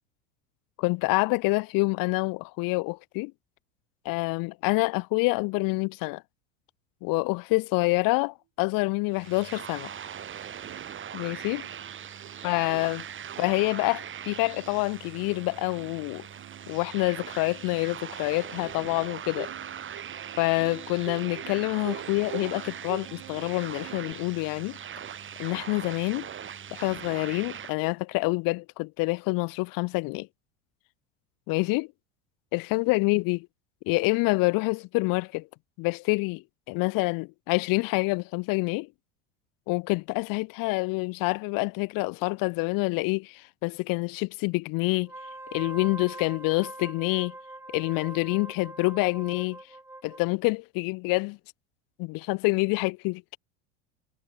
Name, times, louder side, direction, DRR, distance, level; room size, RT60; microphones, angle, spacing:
voice 1, 0.8-3.3 4.1-6.2 7.0-9.9 11.1-11.7 12.4-13.0 13.4-16.2 16.7-19.5 20.4-24.8 25.4-26.3 26.7-30.3 31.5-31.9 32.5-33.4 33.9-35.5 35.8-38.9 39.7-45.1 45.5-47.3 47.7-49.6 50.0-51.4 52.0-53.4, left 26 dB, 60° left, 1.9 m, -27 dB
sound 1, 9.1-27.7, right 8 dB, 30° right, 5.1 m, -40 dB
Plucked string instrument, 10.3-10.4 10.6-24.1, right 28 dB, 60° right, 4.9 m, -46 dB
Wind instrument woodwind instrument, 45.0-50.3, right 2 dB, 5° right, 2.3 m, -43 dB
supercardioid pair, 110°, 38 cm